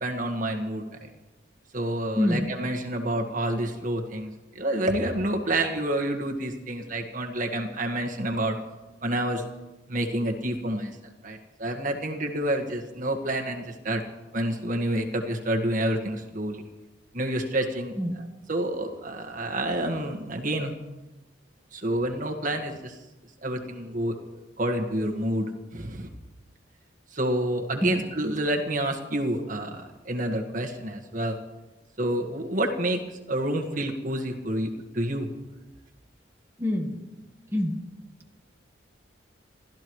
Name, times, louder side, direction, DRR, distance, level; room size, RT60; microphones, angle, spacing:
voice 1, 0.0-1.1 1.7-4.3 4.5-8.6 9.0-9.4 9.9-10.9 11.2-14.0 14.3-16.6 17.1-20.7 21.7-23.0 23.4-26.1 27.1-31.4 32.0-33.0 33.3-34.7 34.9-35.3, right 1 dB, 45° right, 3 dB, 1.7 m, -28 dB
voice 2, 2.1-2.5 18.0-18.2 27.8-27.9 36.6-37.0 37.5-37.7, left 1 dB, 15° right, 1 dB, 1.5 m, -25 dB
29.0 x 13.5 x 3.2 m, 1.1 s
head